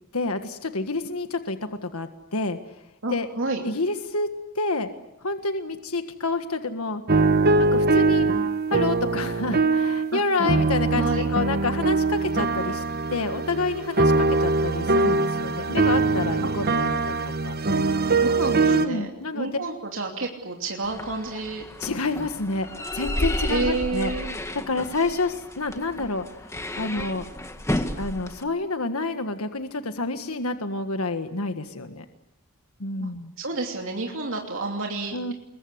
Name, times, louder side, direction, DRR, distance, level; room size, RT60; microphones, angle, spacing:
voice 1, 0.1-2.6 3.1-3.3 3.6-4.3 4.5-4.9 5.2-7.0 7.6-8.3 8.7-12.8 13.1-17.1 17.4-17.5 18.7-19.5 21.8-22.7 22.9-24.1 24.5-26.5 26.8-27.3 28.0-32.0 32.8-33.3 35.1-35.3, left 3 dB, 75° left, 7 dB, 1.6 m, -28 dB
voice 2, 3.0-3.6 10.1-10.2 10.9-11.2 18.2-21.6 23.5-24.3 33.0-33.1 33.4-35.3, right 3 dB, 60° right, 1 dB, 2.9 m, -29 dB
sound 1, 7.1-10.1 10.4-18.9, right 3 dB, 45° right, 1.2 m, -22 dB
sound 2, 20.8-28.4, left 1 dB, 15° left, 1.8 m, -32 dB
27.5 x 22.5 x 8.1 m, 0.83 s
head